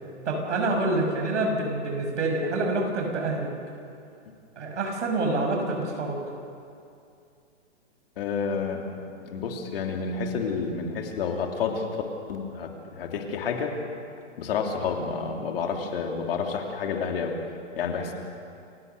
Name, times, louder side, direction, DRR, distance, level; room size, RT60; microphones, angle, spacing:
voice 1, 0.3-3.5 4.6-6.2, right 2 dB, 80° right, 2 dB, 6.1 m, -27 dB
voice 2, 8.2-8.8 9.2-11.8 12.3-13.7 14.4-17.3 17.8-18.1, left 5 dB, 55° left, 2 dB, 3.2 m, -29 dB
28.5 x 16.0 x 6.8 m, 2.5 s
hypercardioid pair, 165°, 35 cm